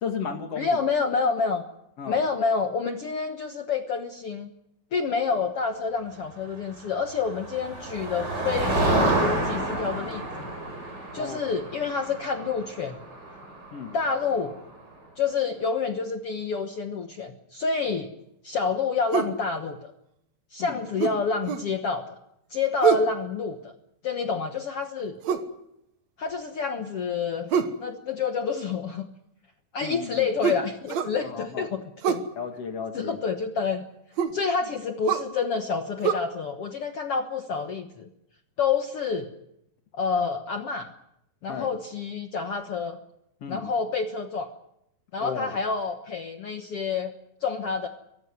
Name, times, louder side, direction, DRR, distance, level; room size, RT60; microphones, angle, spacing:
voice 1, 0.0-0.8 2.0-2.2 11.2-11.4 13.7-14.0 20.6-20.8 29.8-30.3 31.2-31.7 32.4-33.2 41.5-41.7 43.4-43.7 45.2-45.5, left 6 dB, 45° left, 6 dB, 2.5 m, -34 dB
voice 2, 0.5-1.6 2.1-4.5 4.9-10.5 11.1-13.0 13.9-14.6 15.2-18.1 18.4-19.9 20.5-22.1 22.5-23.7 24.0-25.1 26.2-27.5 27.8-29.1 29.7-32.3 32.9-33.8 34.3-38.1 38.6-39.3 39.9-40.9 41.4-43.0 43.5-44.5 45.1-47.1 47.4-47.9, left 5 dB, 65° left, 6 dB, 1.5 m, -28 dB
Motor vehicle (road), 6.8-14.6, right 2 dB, 25° right, 6.2 m, -29 dB
sound 1, 19.1-19.4 21.0-21.7 22.8-23.1 25.2-25.5 27.5-27.8 30.4-31.2 32.0-32.3 34.2-34.4 35.1-35.3 36.0-36.1, right 8 dB, 60° right, 2.2 m, -25 dB
24.0 x 16.0 x 9.7 m, 0.81 s
omnidirectional pair, 4.4 m